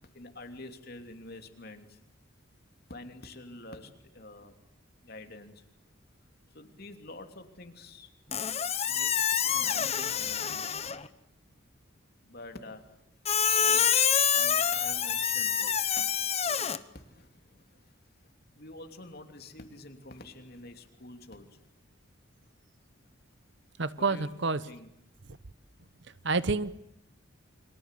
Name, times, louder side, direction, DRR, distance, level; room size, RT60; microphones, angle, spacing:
voice 1, 0.1-2.0 2.9-4.6 5.0-5.6 6.5-8.1 8.8-11.0 12.2-13.0 13.6-14.0 14.3-15.8 16.9-17.9 18.5-21.6 24.0-24.3 24.7-24.9, left 2 dB, 50° left, 6 dB, 3.0 m, -47 dB
Squeak, 8.3-11.1 13.2-16.8, left 8 dB, 30° left, 1.0 m, -27 dB
voice 2, 23.8-24.7 26.2-26.7, right 3 dB, 60° right, 16 dB, 1.0 m, -28 dB
29.5 x 24.5 x 8.4 m, 0.79 s
head